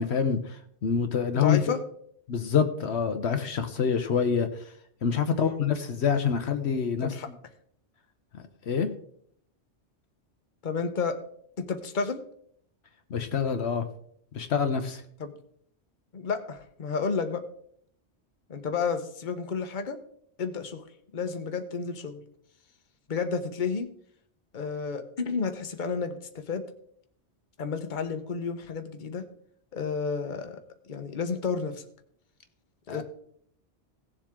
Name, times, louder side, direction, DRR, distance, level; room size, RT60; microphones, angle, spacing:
voice 1, 0.0-1.6 2.3-4.6 5.0-7.1 8.3-8.9 13.1-13.9 14.3-15.0 32.9-33.0, left 6 dB, 70° left, 7 dB, 1.1 m, -26 dB
voice 2, 1.3-1.8 5.3-5.6 7.0-7.3 10.6-11.2 11.6-12.2 15.2-15.3 16.1-17.4 18.5-20.0 20.4-20.8 21.1-22.2 23.1-23.9 24.5-26.6 27.6-29.2 29.7-31.8 32.9-33.0, left 5 dB, 45° left, 7 dB, 1.1 m, -31 dB
17.0 x 7.4 x 3.7 m, 0.65 s
omnidirectional pair, 1.2 m